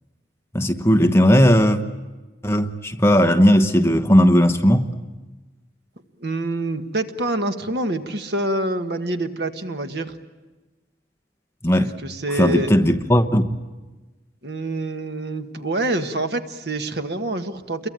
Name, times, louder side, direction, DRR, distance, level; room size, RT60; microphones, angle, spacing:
voice 1, 0.5-1.8 2.4-4.9 11.6-11.9 12.3-13.5, equal, 15° left, 7 dB, 1.1 m, -16 dB
voice 2, 6.2-10.2 12.0-12.7 14.4-17.9, right 1 dB, 60° right, 7 dB, 1.6 m, -26 dB
29.0 x 23.0 x 9.0 m, 1.2 s
head